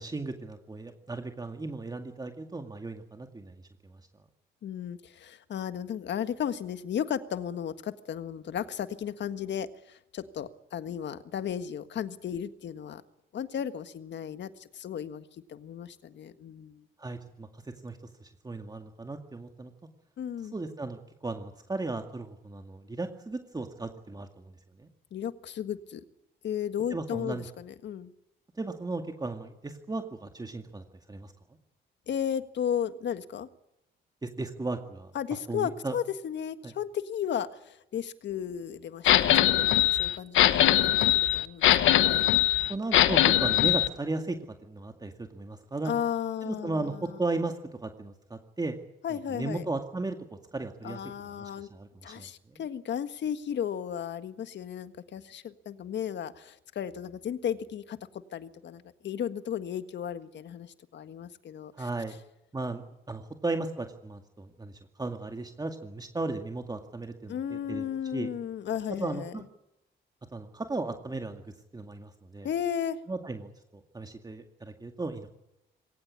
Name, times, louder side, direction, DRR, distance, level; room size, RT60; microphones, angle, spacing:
voice 1, 0.0-4.0 17.0-19.7 20.5-24.5 24.8-24.9 26.9-27.5 28.6-31.3 34.2-35.1 35.5-35.9 36.6-36.7 42.7-46.0 46.4-47.5 47.8-48.7 49.1-50.2 50.5-51.0 51.4-52.6 61.8-62.2 62.5-62.8 63.1-68.3 69.0-69.4 70.3-72.5 73.1-73.5 73.9-75.3, right 3 dB, 20° right, 5 dB, 2.2 m, -36 dB
voice 2, 4.6-13.0 13.3-16.8 20.2-20.5 25.1-26.0 26.4-28.1 32.1-33.5 35.1-39.3 39.6-42.2 45.8-47.2 49.0-49.6 50.8-51.7 52.0-58.0 58.3-61.9 67.3-69.4 72.4-73.0, left 9 dB, 65° left, 11 dB, 1.7 m, -34 dB
sound 1, 39.1-43.9, left 13 dB, 80° left, 1.1 m, -22 dB
22.0 x 18.0 x 9.7 m, 0.88 s
cardioid pair, 90°, 20 cm